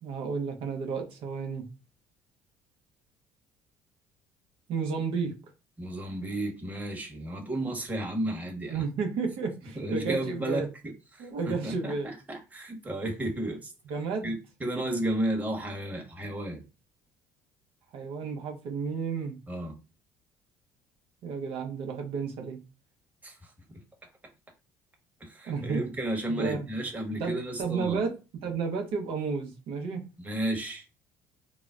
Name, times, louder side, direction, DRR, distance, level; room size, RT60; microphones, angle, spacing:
voice 1, 0.0-1.7 4.7-5.3 8.7-10.7 11.2-12.1 13.9-14.3 17.9-19.4 21.2-22.6 25.5-25.9 26.3-26.7 27.2-28.2 28.4-30.1, right 5 dB, 60° right, 0.8 m, -32 dB
voice 2, 5.8-8.8 9.7-13.7 14.2-14.3 14.6-16.6 19.5-19.7 23.2-23.8 25.2-28.0 30.2-31.0, right 1 dB, 15° right, 1.1 m, -33 dB
3.9 x 2.0 x 2.4 m
hypercardioid pair, 55°, 10 cm